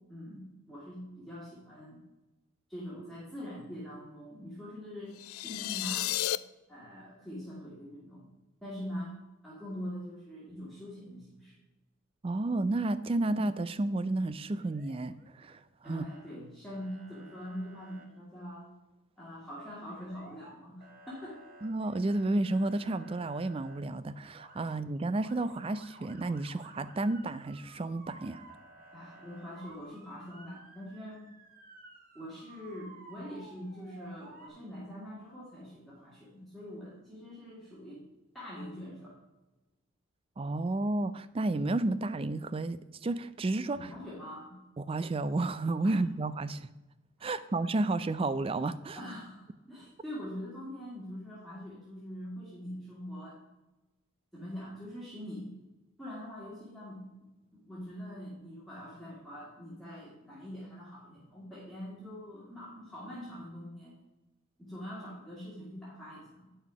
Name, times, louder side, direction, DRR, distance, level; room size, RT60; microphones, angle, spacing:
voice 1, 0.1-2.0 2.7-5.1 5.4-6.2 6.7-8.2 8.6-9.2 9.4-11.6 15.8-18.7 19.2-21.4 28.9-31.2 32.2-38.0 38.3-39.2 43.7-44.5 45.8-46.0 47.2-47.4 48.9-53.4 54.3-55.5 56.0-57.3 57.5-64.0 64.6-66.5, equal, ahead, -8 dB, 1.9 m, -43 dB
sound 1, 5.2-6.4, left 15 dB, 85° left, 0.3 m, -32 dB
voice 2, 12.2-16.0 21.6-28.4 40.4-43.8 44.8-46.7 47.2-49.0, right 2 dB, 25° right, 14 dB, 0.4 m, -31 dB
Motor vehicle (road) / Siren, 14.6-15.5 15.8-16.4 16.7-18.1 19.9-20.5 20.8-23.8 24.2-24.7 25.1-34.5, right 2 dB, 40° right, 1.3 m, -54 dB
9.3 x 5.6 x 4.8 m, 1.1 s
head